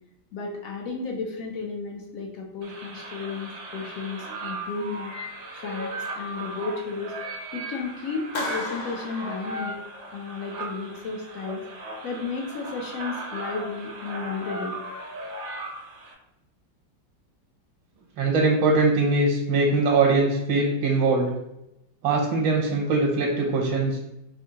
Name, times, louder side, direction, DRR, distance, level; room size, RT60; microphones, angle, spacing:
voice 1, 0.3-5.1 5.5-7.2 7.5-9.8 10.1-11.6 12.0-14.8, left 4 dB, 75° left, 0 dB, 0.7 m, -33 dB
sound 1, 2.6-16.1, right 2 dB, 60° right, 0.7 m, -37 dB
Clapping, 8.3-10.2, left 2 dB, 55° left, 1.2 m, -35 dB
voice 2, 18.2-21.3 22.0-24.0, right 3 dB, 75° right, -1 dB, 1.4 m, -22 dB
4.8 x 2.6 x 2.8 m, 0.88 s
omnidirectional pair, 2.1 m